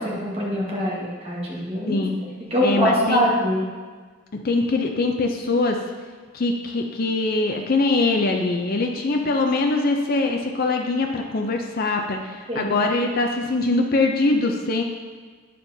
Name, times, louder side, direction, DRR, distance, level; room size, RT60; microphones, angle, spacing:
voice 1, 0.0-2.0 2.5-3.6 12.5-12.8, equal, 25° right, -4 dB, 1.3 m, -23 dB
voice 2, 1.9-2.2 2.6-3.3 4.4-5.8 6.3-14.8, left 3 dB, 45° left, 3 dB, 0.4 m, -22 dB
8.7 x 6.6 x 2.7 m, 1.5 s
head